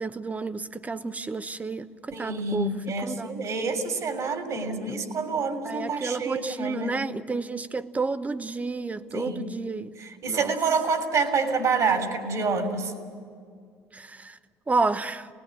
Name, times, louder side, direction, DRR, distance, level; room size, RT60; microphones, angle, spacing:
voice 1, 0.0-3.3 4.7-5.0 5.6-9.9 10.3-10.5 13.9-14.4 14.7-15.3, right 3 dB, 20° right, 1.0 m, -31 dB
voice 2, 2.1-7.0 9.1-9.5 10.0-12.9, right 4 dB, 50° right, 3.3 m, -27 dB
24.0 x 19.5 x 9.6 m
hypercardioid pair, 60°, 7 cm